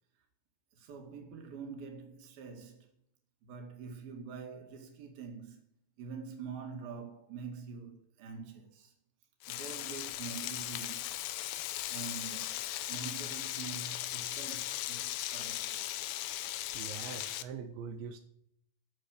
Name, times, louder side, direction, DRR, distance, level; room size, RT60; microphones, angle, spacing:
voice 1, 0.7-2.9 3.4-5.7 6.0-8.9 9.5-11.2 11.9-12.6 12.9-16.0, right 5 dB, 60° right, 3.8 m, -45 dB
Frying (food), 9.4-17.4, left 14 dB, 80° left, 2.2 m, -38 dB
voice 2, 16.7-18.2, right 6 dB, 85° right, 3.2 m, -43 dB
13.0 x 8.0 x 6.7 m
omnidirectional pair, 5.1 m